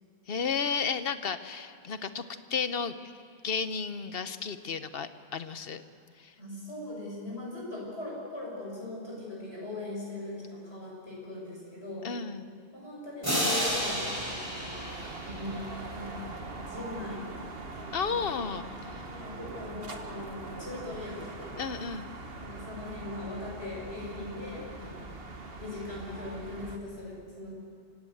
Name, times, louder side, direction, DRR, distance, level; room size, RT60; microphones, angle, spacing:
voice 1, 0.3-2.2 2.5-2.9 3.4-5.8 6.2-6.3 12.0-12.5 17.9-19.1 21.6-22.1, left 6 dB, 65° left, 11 dB, 1.2 m, -33 dB
voice 2, 6.4-12.1 12.7-17.3 18.1-18.5 18.8-21.5 22.4-25.1 25.6-27.5, left 2 dB, 85° left, -4 dB, 7.2 m, -40 dB
sound 1, 13.2-16.1, equal, 15° right, 6.1 m, -31 dB
sound 2, 13.7-26.8, right 3 dB, 65° right, 1.8 m, -42 dB
26.5 x 17.5 x 7.9 m, 2.4 s
omnidirectional pair, 1.0 m